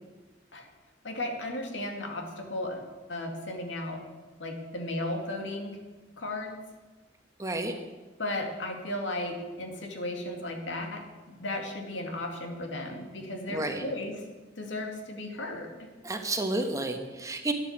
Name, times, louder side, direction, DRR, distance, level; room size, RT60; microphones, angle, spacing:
voice 1, 1.0-4.1 4.4-5.8 6.2-6.6 8.2-14.2 14.6-15.9, left 1 dB, 85° left, 3 dB, 2.3 m, -35 dB
voice 2, 7.4-7.7 13.5-13.8 16.0-17.5, right 2 dB, 20° right, 5 dB, 1.2 m, -31 dB
12.5 x 9.9 x 7.3 m, 1.3 s
head